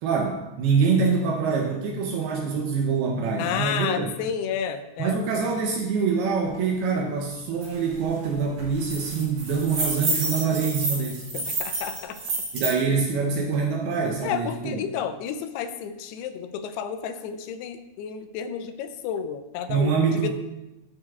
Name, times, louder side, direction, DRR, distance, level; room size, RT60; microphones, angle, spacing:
voice 1, 0.0-4.1 5.0-11.3 12.5-14.8 19.7-20.3, right 5 dB, 75° right, 1 dB, 2.6 m, -25 dB
voice 2, 3.4-5.5 11.3-12.2 14.2-20.3, left 8 dB, 85° left, 9 dB, 2.6 m, -31 dB
sound 1, 7.6-7.7 8.0-8.3 8.6-12.7, right 3 dB, 45° right, 3.9 m, -29 dB
13.5 x 6.5 x 2.4 m, 0.96 s
omnidirectional pair, 4.8 m